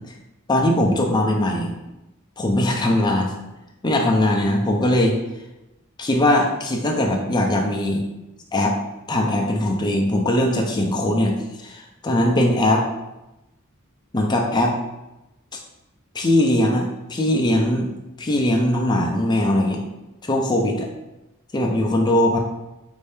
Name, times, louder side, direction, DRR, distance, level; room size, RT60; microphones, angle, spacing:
voice 1, 0.5-1.7 2.4-3.3 3.8-5.2 6.0-8.0 8.5-8.8 9.1-11.4 11.6-12.8 14.1-14.8 16.1-17.9 18.2-19.8 20.2-20.9 21.5-22.4, left 1 dB, 20° left, 1 dB, 0.5 m, -20 dB
4.4 x 2.7 x 3.4 m, 0.97 s
head